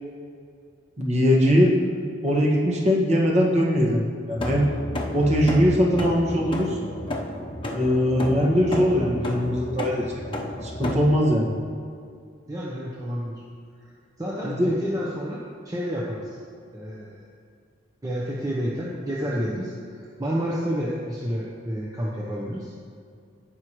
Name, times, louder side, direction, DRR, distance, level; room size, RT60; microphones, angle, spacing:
voice 1, 1.0-1.7 2.2-4.0 4.3-4.7 5.1-6.8 7.7-10.0 10.6-11.5 14.4-14.7, equal, 35° right, -3 dB, 1.8 m, -21 dB
sound 1, 4.3-11.0, left 1 dB, 25° left, 1.0 m, -31 dB
voice 2, 12.5-13.3 14.2-15.4 15.6-16.4 16.7-17.2 18.0-22.9, equal, 20° right, -5 dB, 1.0 m, -30 dB
18.0 x 6.1 x 3.2 m, 2.4 s
head